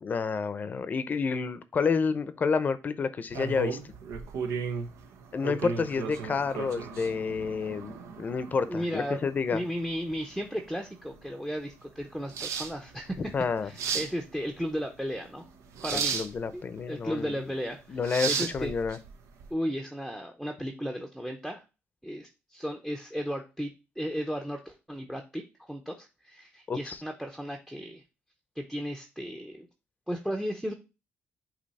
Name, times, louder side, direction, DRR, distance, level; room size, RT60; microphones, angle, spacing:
voice 1, 0.0-3.8 5.3-9.6 13.3-13.7 15.9-17.4 17.9-19.0 26.7-27.0, left 5 dB, 35° left, 13 dB, 0.7 m, -29 dB
sound 1, 3.3-19.5, right 6 dB, 80° right, 1.0 m, -36 dB
voice 2, 8.6-9.2 9.5-13.3 13.6-15.4 15.8-16.2 16.5-16.6 16.9-18.0 18.3-18.7 19.5-21.6 22.0-28.0 28.6-29.7 30.1-30.7, equal, 5° right, 4 dB, 0.7 m, -35 dB
8.6 x 3.0 x 4.1 m, 0.29 s
cardioid pair, 130°, 5 cm